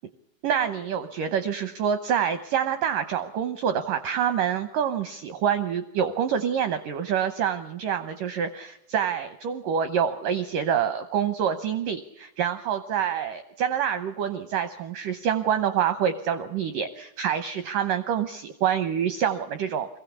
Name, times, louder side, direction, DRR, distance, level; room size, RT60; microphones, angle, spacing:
voice 1, 0.4-19.9, right 8 dB, 85° right, 10 dB, 1.9 m, -26 dB
23.0 x 16.0 x 8.3 m, 0.84 s
omnidirectional pair, 5.1 m